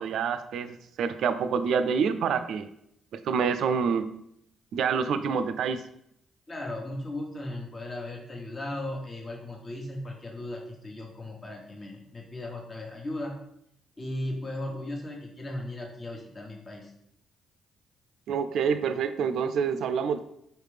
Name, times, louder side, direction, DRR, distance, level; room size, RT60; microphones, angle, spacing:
voice 1, 0.0-2.7 3.2-4.1 4.7-5.8 18.3-20.2, right 6 dB, 75° right, 10 dB, 0.3 m, -27 dB
voice 2, 6.5-13.3 14.0-16.9, left 1 dB, 40° left, 0 dB, 1.2 m, -37 dB
4.4 x 3.2 x 3.3 m, 0.74 s
supercardioid pair, 55°, 0 cm